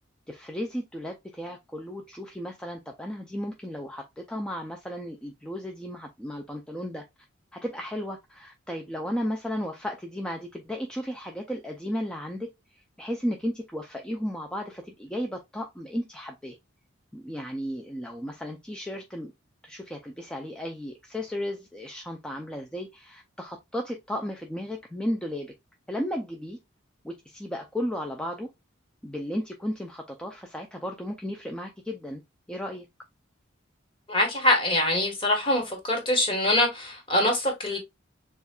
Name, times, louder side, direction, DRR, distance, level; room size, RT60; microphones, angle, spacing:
voice 1, 0.3-7.0 7.5-16.6 17.1-19.3 19.6-25.5 25.9-26.6 27.0-28.5 29.0-32.2 32.5-32.9, equal, 5° left, 0.4 m, -34 dB
voice 2, 34.1-37.8, left 1 dB, 25° left, 1.4 m, -24 dB
6.9 x 2.4 x 2.2 m
head